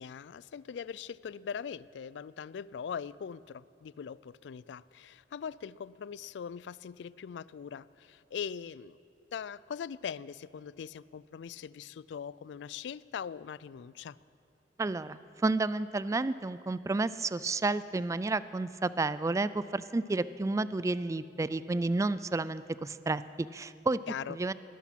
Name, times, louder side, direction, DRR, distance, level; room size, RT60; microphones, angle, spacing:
voice 1, 0.0-9.0 9.3-14.2 24.1-24.4, left 7 dB, 75° left, 20 dB, 0.3 m, -41 dB
voice 2, 14.8-23.2 23.5-24.0 24.3-24.5, right 3 dB, 15° right, 16 dB, 0.3 m, -31 dB
19.5 x 12.0 x 5.8 m, 2.8 s
head